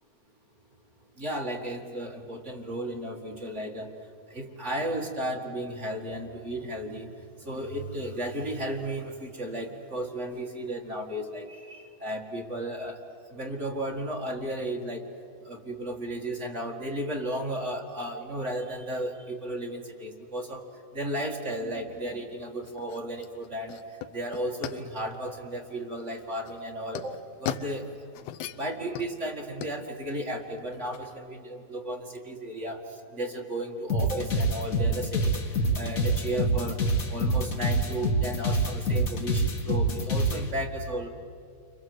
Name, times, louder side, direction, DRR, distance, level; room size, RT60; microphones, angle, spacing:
voice 1, 1.2-3.9 4.3-7.1 7.4-13.0 13.3-15.0 15.4-20.6 20.9-23.8 24.1-27.1 27.4-27.8 28.6-32.8 33.1-35.4 35.7-36.8 37.1-41.1, right 1 dB, 35° right, 0 dB, 1.2 m, -34 dB
sound 1, 21.9-31.2, left 11 dB, 85° left, 2.8 m, -40 dB
sound 2, 33.9-40.4, right 1 dB, 40° left, 1.2 m, -26 dB
29.5 x 25.5 x 7.9 m, 2.6 s
omnidirectional pair, 4.2 m